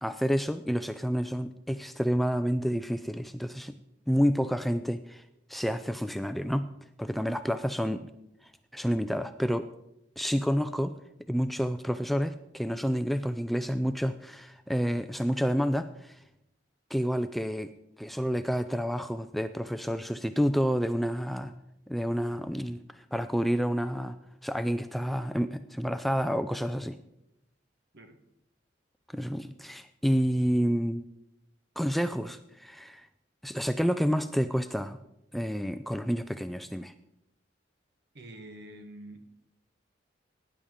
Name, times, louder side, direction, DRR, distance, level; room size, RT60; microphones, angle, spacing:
voice 1, 0.0-3.7 4.1-5.2 5.5-6.7 7.0-8.1 8.7-9.7 10.2-10.9 11.3-16.2 16.9-17.7 18.0-21.5 21.9-24.2 24.4-27.0 29.1-31.0 31.8-33.1 33.4-35.0 35.3-36.9, equal, ahead, 10 dB, 0.3 m, -29 dB
voice 2, 38.1-39.2, right 1 dB, 60° right, 6 dB, 1.4 m, -46 dB
18.0 x 10.0 x 3.7 m, 0.84 s
head